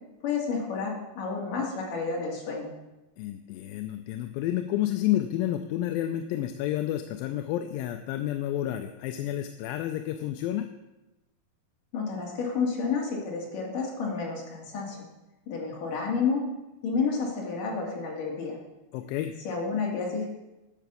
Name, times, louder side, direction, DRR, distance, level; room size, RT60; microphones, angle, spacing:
voice 1, 0.2-2.7 11.9-15.1 15.5-16.4 16.8-18.6 19.5-20.3, left 5 dB, 65° left, -2 dB, 3.6 m, -30 dB
voice 2, 3.2-10.7 18.9-19.3, left 12 dB, 85° left, 7 dB, 2.3 m, -30 dB
10.5 x 5.8 x 6.9 m, 1.0 s
omnidirectional pair, 4.1 m